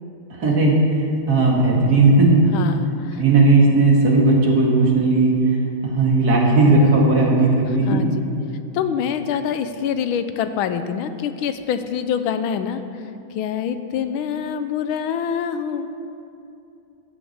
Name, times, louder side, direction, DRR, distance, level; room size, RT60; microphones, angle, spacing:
voice 1, 0.3-1.0 1.3-2.4 3.2-5.3 5.8-8.0, right 2 dB, 50° right, -2 dB, 2.4 m, -16 dB
voice 2, 2.5-3.2 7.9-8.1 8.7-12.8 13.3-15.9, left 8 dB, 90° left, 10 dB, 1.5 m, -25 dB
14.5 x 6.0 x 8.0 m, 2.7 s
omnidirectional pair, 2.2 m